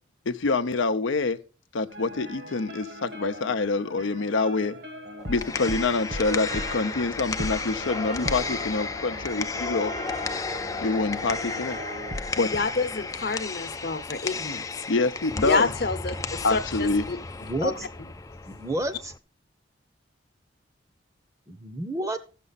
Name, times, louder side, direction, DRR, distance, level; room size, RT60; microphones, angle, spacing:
voice 1, 0.3-1.4 1.7-4.8 5.3-9.9 10.8-11.8 12.4-12.5 14.9-15.7 16.4-17.0, left 3 dB, 85° left, 0.7 m, -26 dB
sound 1, 1.9-12.6, equal, 55° right, 1.4 m, -38 dB
sound 2, 5.2-19.2, left 4 dB, 20° left, 0.4 m, -34 dB
voice 2, 12.5-14.6 15.4-16.1 16.5-17.2 17.6-17.7 18.0-18.1, left 3 dB, 55° left, 0.9 m, -28 dB
voice 3, 17.4-17.9 18.5-19.1 21.5-22.2, right 1 dB, 15° right, 0.8 m, -30 dB
14.0 x 6.8 x 4.0 m
head